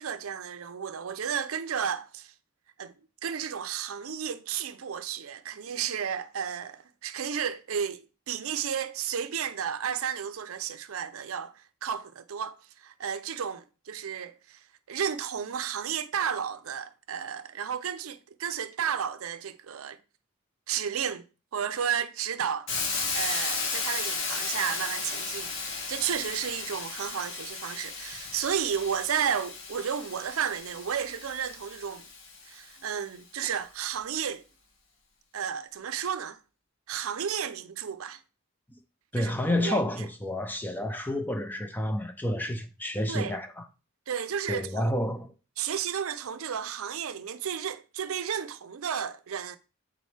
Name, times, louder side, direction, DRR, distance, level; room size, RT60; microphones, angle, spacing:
voice 1, 0.0-2.3 2.8-2.9 3.2-14.6 14.9-20.0 20.7-21.3 21.5-22.7 23.1-32.0 32.5-34.4 35.3-36.4 36.9-38.2 39.2-39.3 39.6-39.8 43.1-43.4 44.1-44.9 45.6-49.6, right 8 dB, 85° right, 0.5 m, -32 dB
Hiss, 22.7-32.6, left 4 dB, 60° left, 1.5 m, -34 dB
voice 2, 39.1-43.6 44.5-45.3, left 1 dB, 10° left, 0.6 m, -30 dB
8.3 x 3.9 x 3.3 m
head